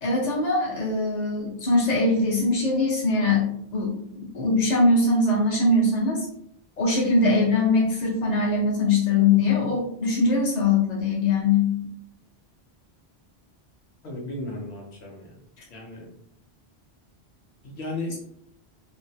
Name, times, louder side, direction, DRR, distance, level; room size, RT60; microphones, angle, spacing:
voice 1, 0.0-6.2 6.8-11.7, left 3 dB, 40° left, -4 dB, 1.0 m, -22 dB
voice 2, 14.0-15.3 15.7-16.1 17.6-18.2, left 2 dB, 85° left, -2 dB, 1.0 m, -34 dB
3.1 x 2.1 x 2.6 m, 0.71 s
omnidirectional pair, 1.1 m